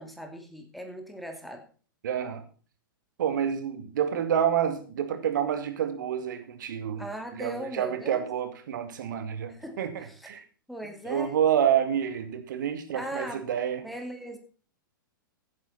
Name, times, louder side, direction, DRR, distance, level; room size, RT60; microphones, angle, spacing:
voice 1, 0.0-1.6 7.0-8.3 9.5-10.3 10.7-11.3 12.9-13.4 13.8-14.4, equal, ahead, 3 dB, 2.5 m, -38 dB
voice 2, 2.0-2.4 3.2-7.1 7.3-10.4 11.0-13.9, right 9 dB, 60° right, 8 dB, 2.3 m, -28 dB
15.0 x 9.6 x 4.2 m, 0.39 s
figure-of-eight pair, 105°, 12 cm